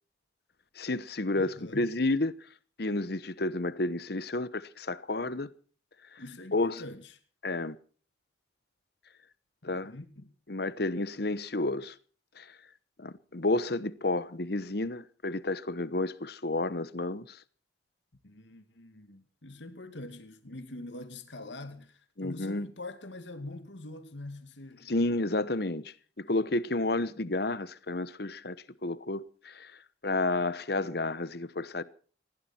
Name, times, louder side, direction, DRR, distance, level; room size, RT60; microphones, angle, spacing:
voice 1, 0.8-2.3 2.8-5.5 6.1-6.2 6.5-6.8 7.4-7.8 9.6-9.9 10.5-11.9 12.4-12.6 13.0-17.4 22.2-22.7 24.9-28.6 28.8-29.7 30.0-31.8, left 2 dB, 55° left, 1.0 m, -31 dB
voice 2, 1.3-1.9 6.2-7.2 9.6-10.3 18.2-24.9, left 2 dB, 70° left, 2.3 m, -44 dB
20.5 x 16.0 x 4.4 m
head